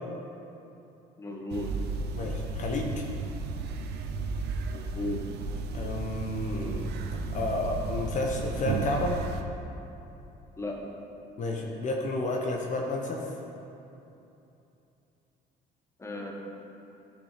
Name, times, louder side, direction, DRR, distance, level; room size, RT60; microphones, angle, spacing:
voice 1, 1.2-1.8 4.7-5.3 10.6-10.9 16.0-16.3, left 1 dB, 15° left, 0 dB, 1.3 m, -35 dB
sound 1, 1.5-9.4, right 4 dB, 75° right, 0.7 m, -34 dB
voice 2, 2.1-3.1 5.7-6.9 7.3-9.2 11.4-13.3, left 2 dB, 45° left, 0 dB, 1.1 m, -31 dB
11.0 x 5.8 x 5.1 m, 2.8 s
cardioid pair, 110°, 17 cm